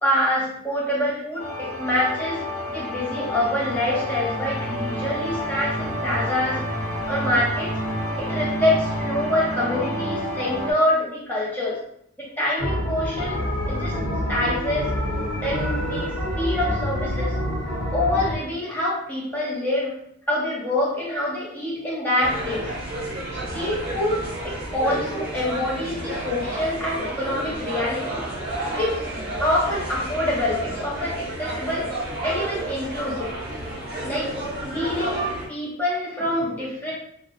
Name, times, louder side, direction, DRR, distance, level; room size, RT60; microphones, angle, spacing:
voice 1, 0.0-2.4 2.7-6.6 7.1-7.8 8.2-11.8 12.2-14.0 14.3-14.9 15.4-17.4 17.9-19.9 20.3-22.7 23.5-28.2 28.8-29.0 29.4-31.9 32.2-33.4 34.0-34.3 34.6-36.9, left 1 dB, 10° left, -6 dB, 0.7 m, -26 dB
sound 1, 1.4-10.7, equal, 35° left, 1.2 m, -29 dB
sound 2, 12.6-18.3, equal, 60° left, 0.9 m, -27 dB
sound 3, 22.2-35.5, right 1 dB, 45° right, 0.7 m, -31 dB
2.7 x 2.1 x 2.5 m, 0.72 s
head